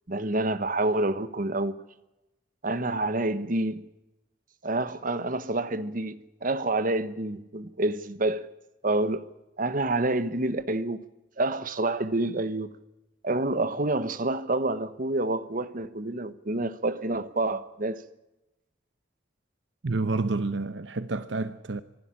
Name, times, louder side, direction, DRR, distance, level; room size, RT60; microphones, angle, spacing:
voice 1, 0.1-1.8 2.6-3.8 4.6-8.5 8.8-9.2 9.6-11.0 11.4-12.7 13.2-18.0, right 2 dB, 45° right, 1.2 m, -28 dB
voice 2, 19.8-21.8, right 3 dB, 70° right, 0.8 m, -29 dB
25.0 x 12.5 x 9.9 m
head